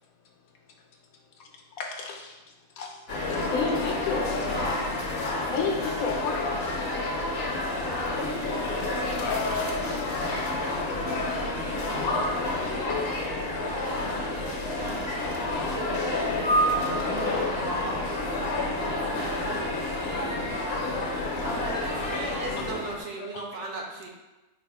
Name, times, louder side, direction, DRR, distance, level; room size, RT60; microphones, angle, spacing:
voice 1, 1.8-2.4 2.8-4.9 5.3-6.6 9.2-10.5 11.8-11.9 12.3-12.8 13.5-13.7 16.3-16.6 18.3-18.4 19.0-19.1 20.0-20.3 20.8-21.0 23.2-23.3, left 4 dB, 80° left, 1 dB, 1.1 m, -33 dB
sound 1, 3.1-23.0, left 2 dB, 55° left, 0.8 m, -29 dB
voice 2, 13.6-16.1 16.6-19.7 20.1-20.6 21.4-21.9, equal, 40° right, -6 dB, 0.5 m, -37 dB
voice 3, 21.8-24.1, right 2 dB, 65° right, 0 dB, 0.9 m, -36 dB
4.7 x 2.1 x 4.6 m, 1.1 s
omnidirectional pair, 1.5 m